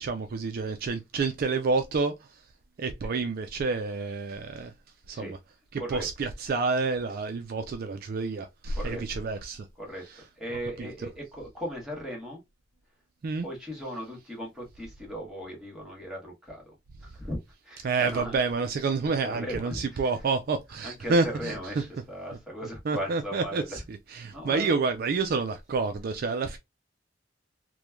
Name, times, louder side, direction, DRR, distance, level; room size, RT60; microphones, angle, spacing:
voice 1, 0.0-2.2 2.8-4.7 5.1-5.4 5.7-9.7 10.8-10.9 13.2-13.5 17.8-21.8 22.9-26.6, right 4 dB, 50° right, 0.3 m, -29 dB
voice 2, 10.4-12.4 13.4-16.7 17.0-17.4 17.6-18.4 19.2-20.1 20.8-23.8 24.3-24.7, equal, 5° right, 1.2 m, -37 dB
3.1 x 2.1 x 2.2 m
head